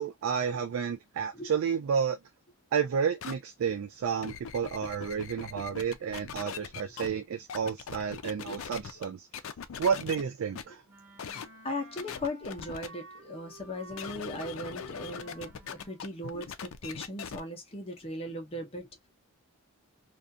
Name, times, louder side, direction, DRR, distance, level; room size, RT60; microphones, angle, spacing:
voice 1, 0.0-2.2 2.7-9.3 9.8-10.8, right 7 dB, 65° right, 0.3 m, -31 dB
sound 1, 3.2-3.3 4.0-7.1 7.5-9.0 9.3-10.2 10.5-10.6 11.2-11.5 12.0-12.9 13.9-17.4, left 7 dB, 65° left, 0.4 m, -40 dB
Wind instrument woodwind instrument, 10.9-16.1, right 1 dB, 85° right, 1.0 m, -52 dB
voice 2, 11.2-19.1, left 1 dB, 25° left, 0.6 m, -38 dB
2.4 x 2.3 x 2.5 m
head